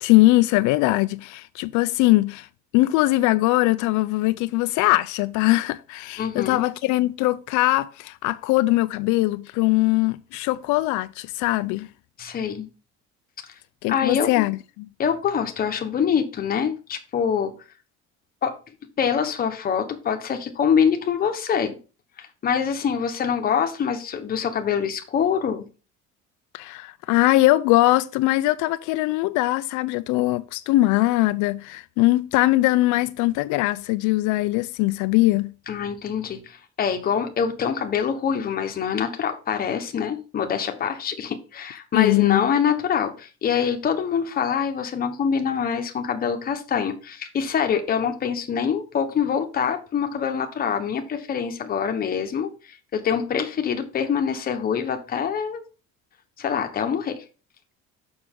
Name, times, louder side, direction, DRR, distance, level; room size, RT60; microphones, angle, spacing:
voice 1, 0.0-2.5 2.7-11.9 13.8-14.9 26.5-35.5 41.9-42.4, left 19 dB, 80° left, 0.5 m, -21 dB
voice 2, 6.2-6.6 12.2-12.7 13.9-14.5 15.0-17.5 18.4-18.5 19.0-21.8 22.2-25.6 35.7-55.6 56.4-57.2, left 7 dB, 30° left, 1.1 m, -25 dB
6.9 x 6.0 x 3.6 m
cardioid pair, 170°, 29 cm